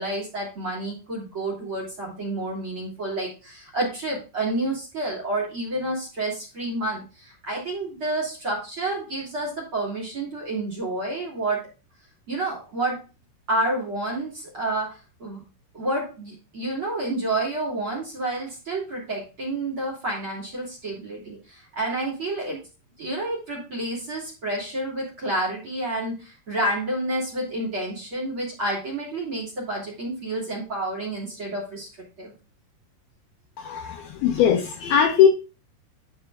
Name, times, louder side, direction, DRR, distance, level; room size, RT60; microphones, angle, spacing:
voice 1, 0.0-11.7 12.3-13.0 13.5-15.4 15.7-22.6 23.0-31.9 32.2-32.3, right 2 dB, 35° right, 0 dB, 2.8 m, -29 dB
voice 2, 33.6-35.3, left 8 dB, 75° left, 5 dB, 2.3 m, -20 dB
10.5 x 5.7 x 2.4 m, 0.32 s
omnidirectional pair, 4.9 m